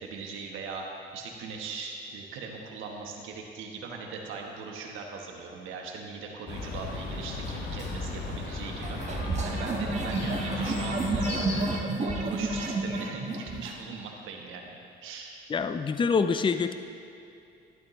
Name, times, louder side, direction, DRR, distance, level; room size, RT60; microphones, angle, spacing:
voice 1, 0.0-14.7 15.0-15.4, right 4 dB, 90° right, 1 dB, 1.2 m, -40 dB
Chirp tweet, 6.5-11.6, left 3 dB, 60° left, 1.6 m, -35 dB
sound 1, 8.8-13.8, right 2 dB, 35° right, 1.3 m, -30 dB
voice 2, 15.5-16.7, left 5 dB, 25° left, 10 dB, 0.5 m, -25 dB
12.0 x 11.0 x 3.1 m, 2.6 s
cardioid pair, 90°, 20 cm